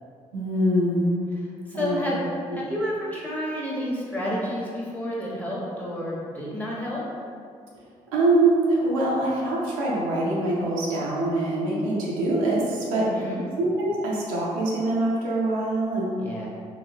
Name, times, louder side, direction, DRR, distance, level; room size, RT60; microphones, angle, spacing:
voice 1, 0.3-1.2 1.7-2.2 2.5-2.6 8.1-13.2 13.6-16.1, right 2 dB, 90° right, -5 dB, 0.5 m, -24 dB
voice 2, 1.7-2.2 2.5-7.0 13.0-13.5 16.2-16.5, equal, 10° left, -6 dB, 1.1 m, -30 dB
2.9 x 2.9 x 2.7 m, 2.3 s
hypercardioid pair, 45°, 17 cm